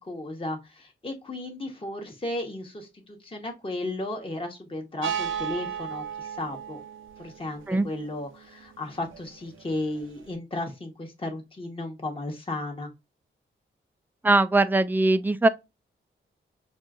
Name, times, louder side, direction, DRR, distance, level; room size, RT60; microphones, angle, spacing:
voice 1, 0.1-2.9 3.2-6.8 7.2-12.9, left 2 dB, 25° left, 1.1 m, -34 dB
sound 1, 5.0-10.3, right 8 dB, 70° right, 0.6 m, -36 dB
voice 2, 14.2-15.5, right 2 dB, 10° right, 0.4 m, -21 dB
5.4 x 2.5 x 2.4 m
cardioid pair, 75°, 21 cm